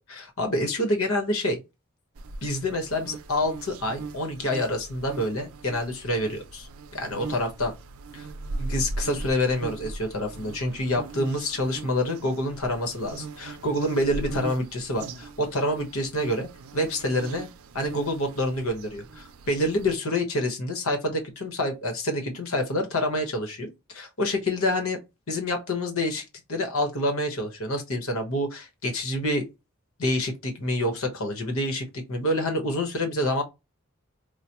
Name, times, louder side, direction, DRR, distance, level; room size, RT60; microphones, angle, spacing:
voice 1, 0.1-1.6 2.4-7.8 8.1-8.3 8.6-17.5 17.7-25.0 25.3-29.5 30.0-33.4, left 1 dB, 85° left, 1.2 m, -27 dB
sound 1, 2.1-20.0, right 3 dB, 85° right, 0.5 m, -39 dB
4.9 x 2.2 x 2.9 m
head